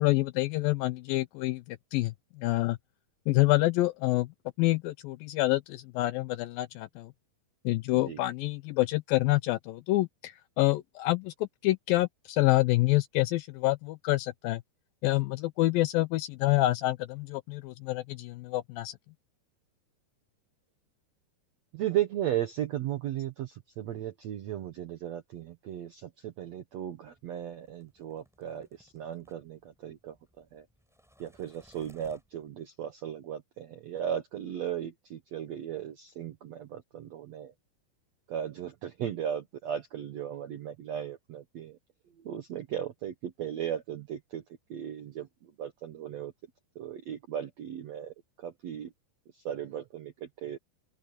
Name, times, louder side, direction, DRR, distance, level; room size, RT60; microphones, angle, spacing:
voice 1, 0.0-2.8 3.3-4.3 4.6-7.1 7.7-14.6 15.0-19.0, left 18 dB, 80° left, 2.1 m, -27 dB
voice 2, 21.7-30.6 31.2-37.5 38.3-41.8 42.2-44.4 44.7-46.3 46.7-48.9 49.3-50.6, right 10 dB, 80° right, 1.5 m, -36 dB
sound 1, 27.0-32.6, equal, ahead, 7.4 m, -63 dB
open air
omnidirectional pair, 4.6 m